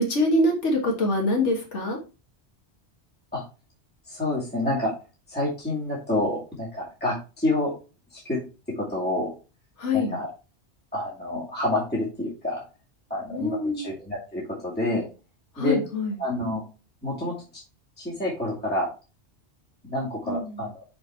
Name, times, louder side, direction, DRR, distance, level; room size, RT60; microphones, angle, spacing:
voice 1, 0.0-2.0 9.8-10.2 13.3-13.9 15.6-16.2 20.3-20.7, left 1 dB, 85° left, 0 dB, 1.9 m, -24 dB
voice 2, 4.1-4.9 5.3-7.7 8.1-8.4 8.8-9.3 9.9-10.3 10.9-12.6 13.1-15.1 15.6-15.8 16.2-16.6 17.0-17.3 18.0-18.9 19.8-20.8, left 1 dB, 10° left, -7 dB, 2.4 m, -28 dB
5.7 x 4.6 x 4.6 m, 0.32 s
omnidirectional pair, 1.2 m